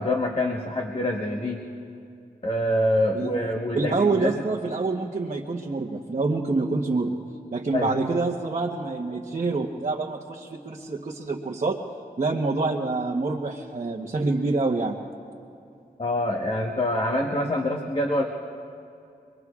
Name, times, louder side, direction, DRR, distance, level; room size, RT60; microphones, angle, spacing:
voice 1, 0.0-1.7 2.4-4.4 7.7-7.9 16.0-18.2, left 1 dB, 35° left, 0 dB, 1.2 m, -25 dB
voice 2, 3.7-7.2 7.5-11.8 12.2-15.0, right 3 dB, 50° right, -1 dB, 1.0 m, -26 dB
27.0 x 22.0 x 2.4 m, 2.5 s
wide cardioid pair, 75°, 16 cm